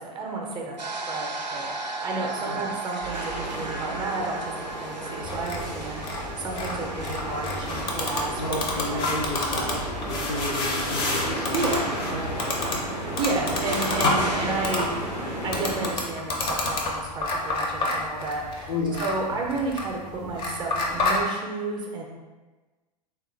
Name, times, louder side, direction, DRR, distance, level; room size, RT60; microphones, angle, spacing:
voice 1, 0.0-9.8 11.5-12.0 13.2-15.0 15.4-18.7 19.0-22.1, right 3 dB, 20° right, -1 dB, 0.5 m, -32 dB
sound 1, 0.8-9.0, right 3 dB, 85° right, 0.4 m, -36 dB
sound 2, 3.0-15.9, right 1 dB, 80° left, 1.2 m, -33 dB
sound 3, 5.2-21.2, left 2 dB, 25° left, 0.6 m, -29 dB
voice 2, 8.4-12.8 13.3-13.4 18.7-19.0 19.3-19.4, left 2 dB, 65° left, -1 dB, 0.7 m, -33 dB
3.5 x 2.3 x 3.2 m, 1.3 s
figure-of-eight pair, 90°, 21 cm